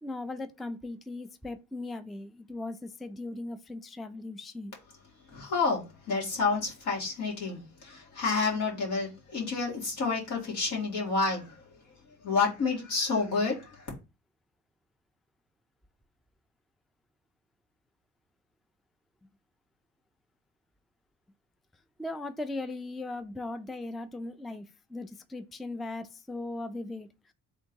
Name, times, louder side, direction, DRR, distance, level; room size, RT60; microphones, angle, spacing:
voice 1, 0.0-4.7 22.0-24.7 24.9-27.1, left 2 dB, ahead, 0.3 m, -38 dB
voice 2, 5.3-11.6 12.2-13.9, left 4 dB, 80° left, 2.0 m, -29 dB
3.6 x 2.6 x 4.5 m
cardioid pair, 90°, 30 cm